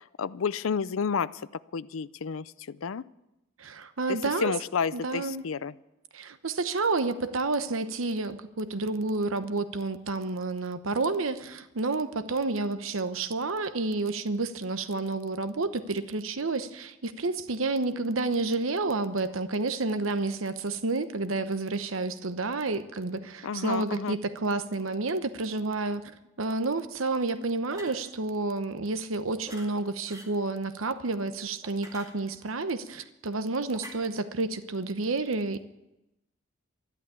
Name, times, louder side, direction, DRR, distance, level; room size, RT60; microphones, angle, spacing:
voice 1, 0.0-1.4 1.7-3.0 4.1-5.7 23.4-24.2, left 6 dB, 85° left, 18 dB, 0.5 m, -31 dB
voice 2, 3.6-4.5 4.9-5.4 6.1-35.6, right 3 dB, 85° right, 11 dB, 1.0 m, -30 dB
sound 1, 27.7-28.0 29.4-29.7 30.1-30.3 31.6-32.5 33.7-33.9, right 1 dB, 20° right, 2.4 m, -45 dB
13.0 x 11.5 x 8.4 m, 0.94 s
head